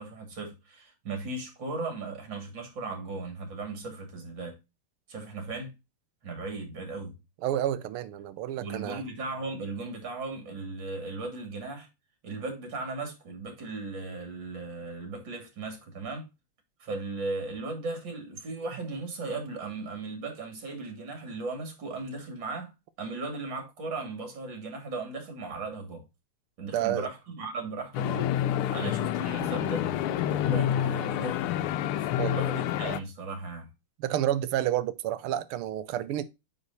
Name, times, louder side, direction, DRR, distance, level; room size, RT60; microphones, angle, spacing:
voice 1, 0.0-4.6 5.1-5.7 6.2-7.1 8.6-11.9 12.2-16.3 16.8-22.7 23.0-26.0 26.6-28.3 28.7-31.4 32.0-33.7, right 3 dB, 55° right, 3.1 m, -37 dB
voice 2, 7.4-9.0 26.7-27.1 32.2-32.4 34.0-36.2, right 12 dB, 80° right, 1.6 m, -29 dB
sound 1, 27.9-33.0, left 11 dB, 80° left, 1.5 m, -28 dB
8.8 x 4.2 x 4.0 m
omnidirectional pair, 2.4 m